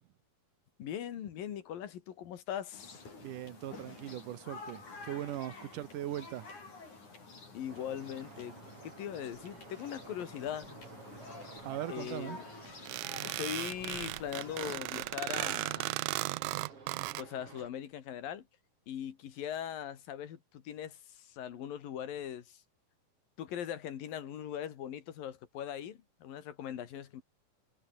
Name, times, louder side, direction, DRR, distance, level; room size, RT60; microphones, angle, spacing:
voice 1, 0.8-3.0 7.5-8.5 8.8-10.9 11.9-12.5 13.2-16.0 17.2-18.4 18.9-22.6 23.4-27.2, left 10 dB, 85° left, 3.8 m, -40 dB
sound 1, 2.7-14.8, left 3 dB, 60° left, 8.7 m, -50 dB
voice 2, 3.2-6.5 11.6-12.4, right 12 dB, 70° right, 2.8 m, -40 dB
sound 2, 7.7-17.7, right 4 dB, 40° right, 4.9 m, -53 dB
sound 3, 12.9-17.2, right 20 dB, 90° right, 1.6 m, -36 dB
omnidirectional pair, 4.0 m